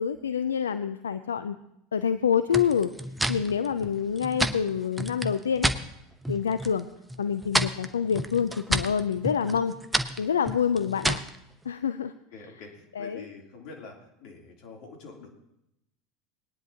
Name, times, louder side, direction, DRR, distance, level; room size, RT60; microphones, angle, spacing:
voice 1, 0.0-1.6 1.9-2.9 3.3-5.7 6.3-6.9 7.2-9.7 10.2-11.2 11.7-12.1 12.4-12.5 12.9-13.3, left 7 dB, 80° left, 12 dB, 0.4 m, -27 dB
sound 1, 2.5-5.8 6.2-6.8 7.1-11.4, right 1 dB, 5° right, 0.8 m, -30 dB
voice 2, 12.3-15.4, left 4 dB, 55° left, 1 dB, 3.1 m, -46 dB
20.5 x 10.5 x 2.9 m, 0.82 s
hypercardioid pair, 80°, 0 cm